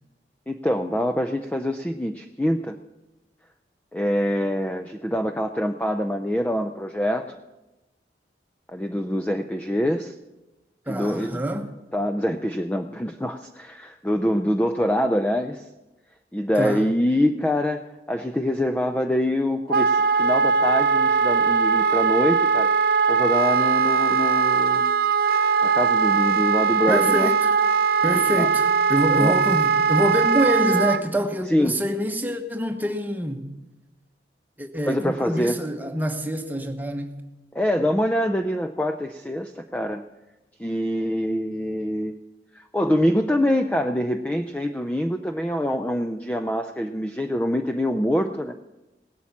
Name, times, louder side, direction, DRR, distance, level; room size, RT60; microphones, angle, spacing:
voice 1, 0.5-2.8 3.9-7.4 8.7-10.1 10.9-11.4 11.9-15.7 16.3-24.8 25.6-27.3 28.4-28.5 29.2-29.3 31.5-31.8 34.9-35.6 37.5-40.0 40.6-42.1 42.5-48.5, equal, 10° left, 0.4 m, -25 dB
voice 2, 10.9-11.7 16.6-16.9 26.9-27.6 28.0-33.5 34.6-37.2, equal, 10° right, 1.0 m, -26 dB
Wind instrument woodwind instrument, 19.7-31.0, right 5 dB, 55° right, 0.5 m, -20 dB
17.5 x 8.5 x 7.2 m
head